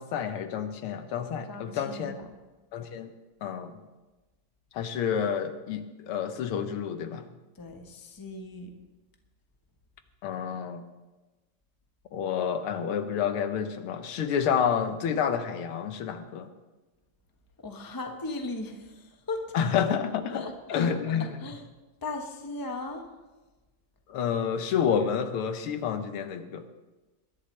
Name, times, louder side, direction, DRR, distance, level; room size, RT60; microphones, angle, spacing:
voice 1, 0.0-2.1 2.7-3.1 3.4-3.8 4.7-7.3 10.2-10.8 12.1-16.5 19.5-21.4 24.1-26.6, left 7 dB, 85° left, 9 dB, 1.8 m, -29 dB
voice 2, 1.5-2.4 7.6-8.7 17.6-19.4 20.3-20.9 21.2-21.6 22.0-23.1, left 2 dB, 15° left, 4 dB, 0.8 m, -37 dB
21.0 x 11.5 x 3.3 m, 1.2 s
omnidirectional pair, 2.3 m